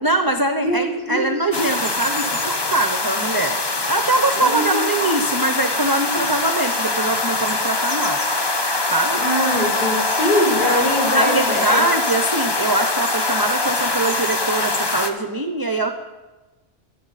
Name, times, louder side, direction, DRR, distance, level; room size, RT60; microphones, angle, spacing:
voice 1, 0.0-3.6 3.9-8.2 8.9-9.2 11.1-15.9, right 2 dB, 25° right, 6 dB, 0.5 m, -22 dB
voice 2, 0.6-1.3 4.3-4.8 9.1-11.8, equal, 40° left, -4 dB, 6.0 m, -22 dB
sound 1, 1.5-15.1, left 2 dB, 25° left, 0.8 m, -22 dB
24.0 x 8.4 x 4.1 m, 1.2 s
omnidirectional pair, 1.2 m